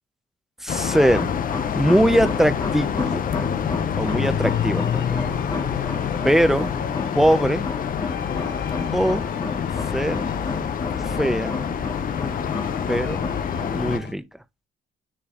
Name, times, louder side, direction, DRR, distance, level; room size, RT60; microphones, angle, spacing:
voice 1, 0.6-1.3 1.7-3.2 4.0-5.2 6.2-6.7 7.1-7.7 8.9-9.3 9.9-10.2 11.0-11.6 12.9-13.2 13.7-14.2, equal, ahead, 0.6 m, -21 dB
sound 1, 0.7-14.0, left 8 dB, 45° left, 0.5 m, -27 dB
sound 2, 0.9-13.9, left 3 dB, 20° left, 0.9 m, -32 dB
sound 3, 1.7-14.1, left 6 dB, 60° left, 0.9 m, -36 dB
9.9 x 4.0 x 2.5 m
cardioid pair, 90°, 20 cm